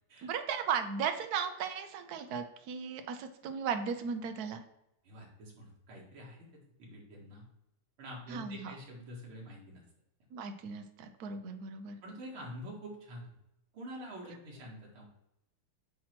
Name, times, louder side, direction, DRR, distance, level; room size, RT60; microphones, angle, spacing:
voice 1, 0.2-4.6 8.3-8.8 10.3-12.0, right 6 dB, 65° right, 7 dB, 1.0 m, -36 dB
voice 2, 5.0-6.5 6.8-7.4 8.0-9.8 12.0-13.3 13.7-15.0, equal, 85° right, -3 dB, 2.7 m, -46 dB
8.5 x 3.0 x 5.8 m, 0.85 s
omnidirectional pair, 2.3 m